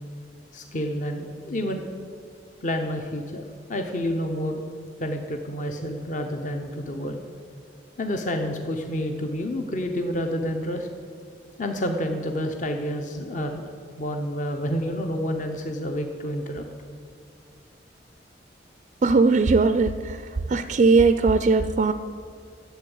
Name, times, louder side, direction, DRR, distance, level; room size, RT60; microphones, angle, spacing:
voice 1, 0.5-1.9 2.6-4.6 5.0-7.2 8.0-10.9 11.6-13.6 14.0-16.7, equal, 45° left, 4 dB, 0.8 m, -29 dB
voice 2, 19.0-20.2 20.5-21.9, right 4 dB, 40° right, 11 dB, 0.4 m, -19 dB
11.5 x 8.0 x 7.8 m, 2.4 s
head